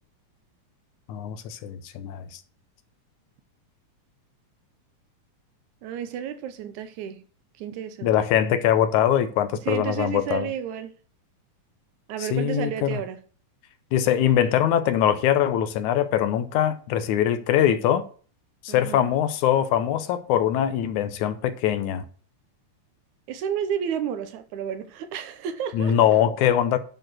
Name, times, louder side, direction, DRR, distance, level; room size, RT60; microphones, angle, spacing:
voice 1, 1.1-2.4 8.0-10.5 12.2-13.0 13.9-18.0 18.6-22.0 25.7-26.8, left 10 dB, 75° left, 2.1 m, -22 dB
voice 2, 5.8-7.2 7.6-8.1 9.7-11.0 12.1-13.2 18.7-19.1 23.3-26.0, right 8 dB, 75° right, 2.2 m, -31 dB
10.5 x 4.6 x 6.3 m
omnidirectional pair, 3.6 m